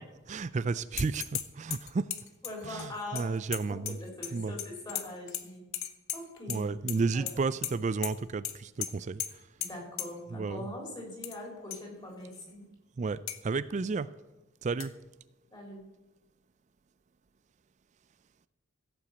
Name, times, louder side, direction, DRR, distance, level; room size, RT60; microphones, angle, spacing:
voice 1, 0.3-2.1 2.6-4.0 4.3-4.6 6.5-9.4 10.3-10.7 13.0-14.1 14.6-15.0, right 4 dB, 35° right, 16 dB, 0.3 m, -32 dB
sound 1, 1.0-1.4 1.7-4.3 4.6-5.4 5.7-6.6 6.9-7.3 7.6-7.7 8.0-8.1 8.4-8.5 8.8-8.9 9.2-9.3 9.6-9.7 10.0-10.1 11.0-11.4 11.7-11.8 12.3-12.4 13.3-13.4 14.8-14.9, left 12 dB, 70° left, 1.0 m, -36 dB
voice 2, 2.4-3.2 3.7-5.6 6.1-6.7 7.1-7.5 9.6-12.7 15.5-15.8, left 1 dB, 20° left, -1 dB, 3.7 m, -42 dB
15.5 x 6.0 x 8.0 m, 1.0 s
head